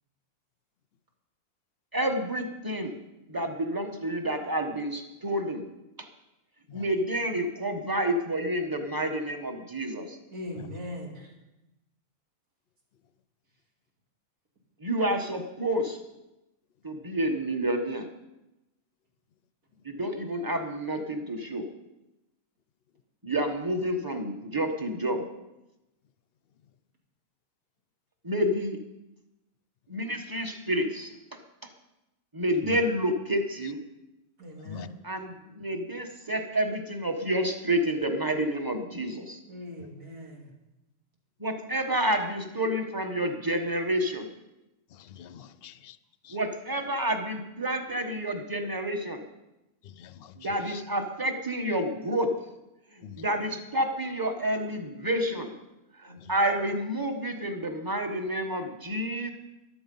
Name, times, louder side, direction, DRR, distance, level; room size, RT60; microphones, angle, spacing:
voice 1, 1.9-2.9 3.3-5.6 6.7-10.2 14.8-16.0 16.8-18.1 19.8-21.6 23.2-25.2 28.2-28.8 29.9-31.4 32.3-33.8 35.0-39.4 41.4-44.3 46.3-49.2 50.4-52.3 52.9-55.5 55.9-59.3, right 1 dB, 15° right, 5 dB, 1.1 m, -29 dB
voice 2, 10.3-11.3 34.4-34.9 39.5-40.5 53.3-53.4 56.1-56.2, left 1 dB, 85° right, -1 dB, 3.3 m, -40 dB
voice 3, 44.9-46.0 46.2-46.4 49.8-50.4 50.7-50.8 53.0-53.2 56.2-56.3, left 8 dB, 60° left, 15 dB, 0.6 m, -43 dB
14.5 x 11.5 x 5.5 m, 0.94 s
omnidirectional pair, 1.6 m